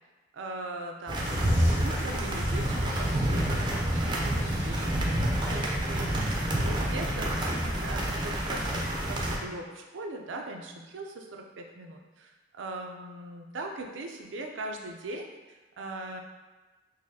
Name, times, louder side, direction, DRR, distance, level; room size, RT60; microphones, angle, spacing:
voice 1, 0.3-16.2, right 2 dB, 80° right, 3 dB, 0.5 m, -40 dB
sound 1, 1.1-9.4, right 1 dB, 25° right, 0.4 m, -28 dB
sound 2, 1.2-5.9 6.3-6.4, left 1 dB, 70° left, 1.1 m, -46 dB
4.0 x 2.6 x 2.7 m, 1.2 s
head